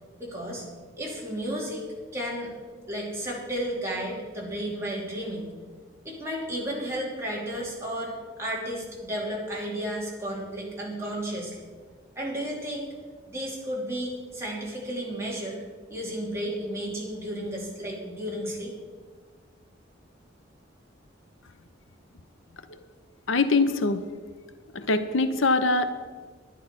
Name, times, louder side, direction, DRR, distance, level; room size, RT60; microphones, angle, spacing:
voice 1, 0.2-0.6 1.0-1.9 2.1-2.5 2.9-5.5 6.0-11.6 12.1-12.9 13.3-15.6 15.9-18.7, equal, 15° right, -4 dB, 2.9 m, -33 dB
voice 2, 23.3-24.0 24.7-25.9, left 3 dB, 80° left, 10 dB, 0.8 m, -23 dB
11.0 x 10.5 x 6.0 m, 1.5 s
head